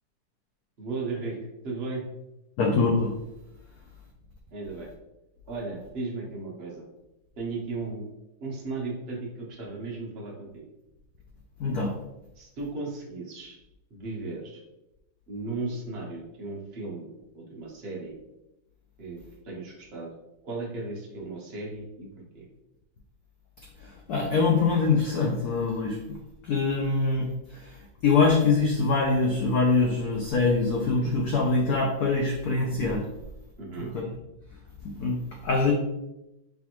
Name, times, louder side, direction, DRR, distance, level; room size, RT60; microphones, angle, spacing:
voice 1, 0.8-1.4 1.6-2.1 4.5-4.9 5.5-6.8 7.4-8.1 8.4-10.6 12.4-13.6 13.9-14.6 15.3-18.1 19.0-19.2 19.4-20.1 20.4-22.1 22.3-22.5 33.6-33.9, right 3 dB, 50° right, -3 dB, 0.7 m, -35 dB
voice 2, 2.6-3.1 11.6-11.9 23.8-26.2 26.4-27.8 28.0-33.0 33.8-34.1 35.0-35.2 35.4-35.7, left 4 dB, 85° left, 0 dB, 0.8 m, -24 dB
4.3 x 3.3 x 2.9 m, 0.92 s
omnidirectional pair, 2.3 m